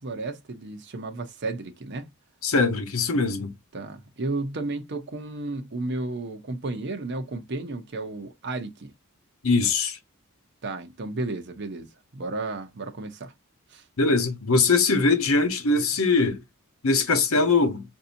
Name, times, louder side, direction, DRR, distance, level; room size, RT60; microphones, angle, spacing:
voice 1, 0.0-2.1 3.7-8.9 10.6-11.9 12.1-13.3 13.7-13.8, right 2 dB, 50° right, 0.7 m, -33 dB
voice 2, 2.4-3.5 9.4-10.0 14.0-16.4 16.8-17.8, left 3 dB, 70° left, 0.9 m, -22 dB
5.3 x 2.7 x 2.6 m
head